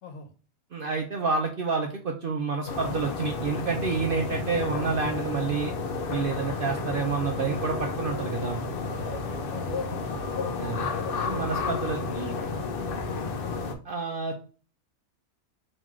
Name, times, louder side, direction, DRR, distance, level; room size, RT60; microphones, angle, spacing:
voice 1, 0.0-0.3 9.5-10.4 11.7-12.1 13.1-13.3, left 4 dB, 80° left, 6 dB, 1.2 m, -44 dB
voice 2, 0.7-5.7 6.1-8.6 10.6-10.9 11.2-12.4 13.8-14.4, right 4 dB, 65° right, 3 dB, 0.5 m, -29 dB
sound 1, 2.7-13.7, left 4 dB, 55° left, 0.6 m, -31 dB
3.6 x 3.0 x 3.0 m, 0.38 s
omnidirectional pair, 1.4 m